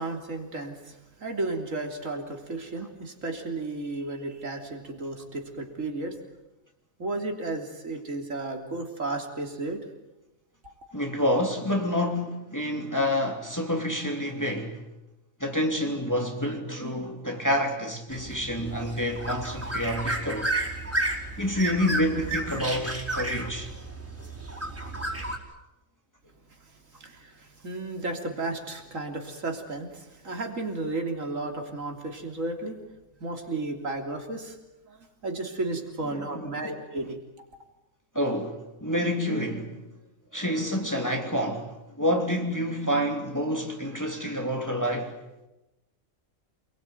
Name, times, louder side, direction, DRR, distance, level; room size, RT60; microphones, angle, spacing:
voice 1, 0.0-6.2 7.0-9.8 26.6-32.8 33.2-34.6 34.9-37.2, right 2 dB, 70° right, 3.7 m, -33 dB
voice 2, 10.9-14.8 15.4-20.6 21.4-23.7 36.0-36.8 38.1-39.8 40.3-45.1, equal, 15° left, 3.0 m, -28 dB
sound 1, 18.1-25.4, right 1 dB, 10° right, 4.8 m, -32 dB
29.0 x 21.5 x 9.5 m
omnidirectional pair, 1.4 m